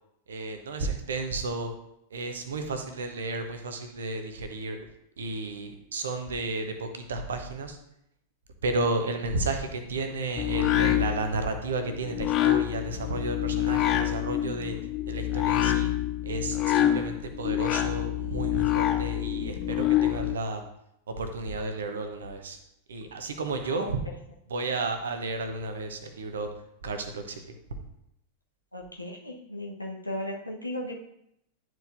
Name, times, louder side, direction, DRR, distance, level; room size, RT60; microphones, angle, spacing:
voice 1, 0.3-1.7 2.1-4.8 5.2-7.8 8.6-14.8 15.1-15.9 16.2-20.6 21.1-22.6 22.9-24.0 24.5-26.5 26.8-27.6, right 2 dB, 65° right, 7 dB, 0.9 m, -32 dB
sound 1, 10.4-20.3, left 12 dB, 35° left, 0.5 m, -26 dB
voice 2, 28.7-30.9, left 1 dB, 85° left, -1 dB, 1.1 m, -36 dB
10.5 x 4.6 x 2.6 m, 0.78 s
figure-of-eight pair, 90°, 0 cm